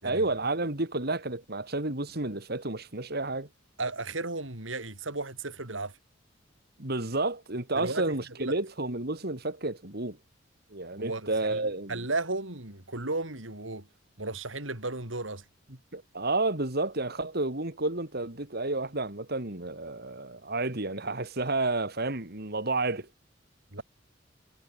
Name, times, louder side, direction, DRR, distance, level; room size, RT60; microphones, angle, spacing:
voice 1, 0.0-3.5 6.8-10.2 10.7-12.0 15.9-23.1, right 2 dB, 55° right, 3.1 m, -31 dB
voice 2, 3.8-6.0 7.7-8.5 11.0-13.9 14.2-15.4 23.7-23.8, right 2 dB, 85° right, 5.0 m, -35 dB
head